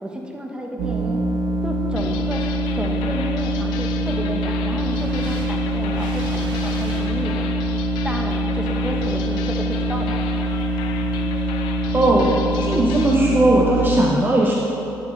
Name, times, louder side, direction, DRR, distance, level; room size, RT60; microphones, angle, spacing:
voice 1, 0.0-1.2 1.6-2.5 2.7-7.5 8.0-10.2, equal, 10° right, 0 dB, 1.2 m, -31 dB
sound 1, 0.8-13.7, equal, 85° right, 0.8 m, -24 dB
sound 2, 2.0-13.2, left 7 dB, 90° left, 0.4 m, -36 dB
voice 2, 11.9-14.5, right 1 dB, 25° right, -3 dB, 0.9 m, -18 dB
9.5 x 7.2 x 3.3 m, 2.9 s
supercardioid pair, 65°, 8 cm